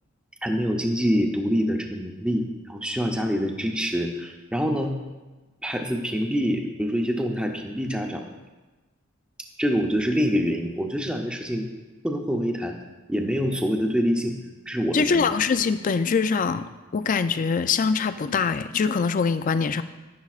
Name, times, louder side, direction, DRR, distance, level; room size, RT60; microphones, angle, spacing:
voice 1, 0.4-5.0 5.6-8.2 9.6-11.7 12.0-12.8 13.1-14.3 14.7-15.3, equal, 5° right, 2 dB, 0.6 m, -25 dB
voice 2, 14.9-16.6 16.9-19.8, left 5 dB, 40° left, 12 dB, 0.4 m, -23 dB
11.0 x 10.5 x 2.4 m, 1.2 s
head